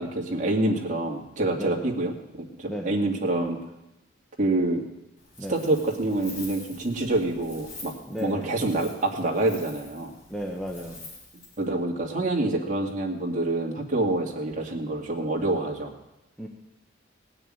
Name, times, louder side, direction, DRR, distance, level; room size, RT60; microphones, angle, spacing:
voice 1, 0.0-3.6 4.4-4.8 5.5-7.9 8.2-10.1 11.6-15.9, right 2 dB, 35° right, -1 dB, 2.2 m, -26 dB
voice 2, 1.5-1.9 2.7-3.0 5.4-5.6 8.1-8.5 10.3-11.0 16.4-16.5, equal, 5° left, 0 dB, 1.1 m, -34 dB
Wind, 5.2-11.6, left 2 dB, 60° left, 4.5 m, -46 dB
18.0 x 6.7 x 8.9 m, 0.93 s
head